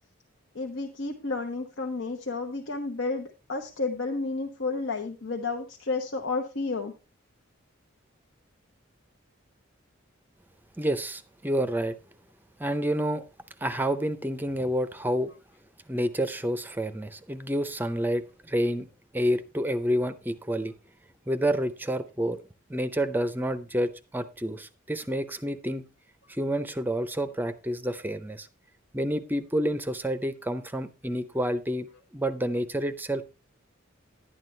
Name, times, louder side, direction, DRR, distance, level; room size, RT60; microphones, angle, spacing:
voice 1, 0.5-6.9, left 3 dB, 75° left, 3 dB, 1.0 m, -31 dB
voice 2, 10.8-12.0 12.6-13.2 13.6-15.3 15.9-18.9 19.1-20.7 21.3-22.4 22.7-25.8 26.3-28.5 28.9-31.9 32.1-33.2, equal, 10° right, 12 dB, 0.5 m, -29 dB
11.5 x 9.3 x 3.2 m, 0.30 s
head